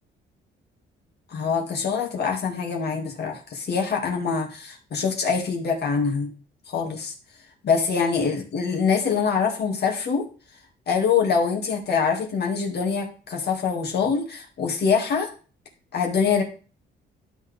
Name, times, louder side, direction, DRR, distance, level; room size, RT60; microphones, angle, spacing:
voice 1, 1.3-6.3 6.7-7.1 7.6-10.2 10.9-15.3 15.9-16.4, left 6 dB, 55° left, 0 dB, 2.3 m, -24 dB
12.0 x 4.2 x 3.5 m, 0.37 s
cardioid pair, 90°, 20 cm